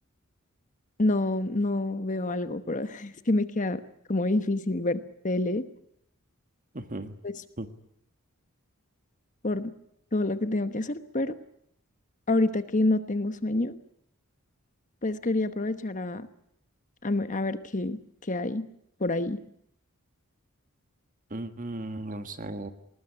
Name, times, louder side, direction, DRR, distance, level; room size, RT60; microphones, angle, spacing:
voice 1, 1.0-3.8 4.1-5.6 7.2-7.3 9.4-9.7 10.1-11.3 12.3-13.8 15.0-16.3 17.0-18.6 19.0-19.4, left 2 dB, 35° left, 11 dB, 1.1 m, -27 dB
voice 2, 6.7-7.2 7.6-7.7 21.3-22.7, right 1 dB, 35° right, 9 dB, 1.6 m, -36 dB
20.5 x 19.5 x 9.9 m, 0.74 s
head